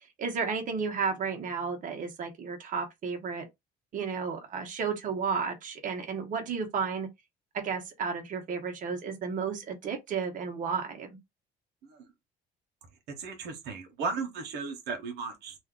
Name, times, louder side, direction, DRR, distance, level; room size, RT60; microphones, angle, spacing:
voice 1, 0.2-3.5 3.9-7.1 7.5-11.2, right 5 dB, 50° right, 1.0 m, -32 dB
voice 2, 13.2-15.6, right 4 dB, 80° right, 1.0 m, -35 dB
2.6 x 2.4 x 3.6 m
cardioid pair, 110°, 17 cm